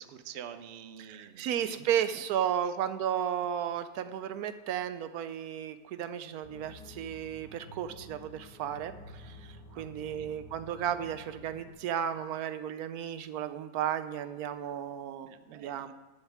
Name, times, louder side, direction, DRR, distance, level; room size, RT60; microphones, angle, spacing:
voice 1, 0.0-1.8 2.1-2.2 2.6-2.8 9.7-10.3 15.2-15.9, right 9 dB, 55° right, 10 dB, 0.8 m, -48 dB
voice 2, 1.1-15.9, right 9 dB, 80° right, 12 dB, 1.1 m, -34 dB
sound 1, 6.4-11.7, left 1 dB, 35° left, 2.4 m, -50 dB
12.5 x 11.5 x 3.5 m, 1.1 s
omnidirectional pair, 1.6 m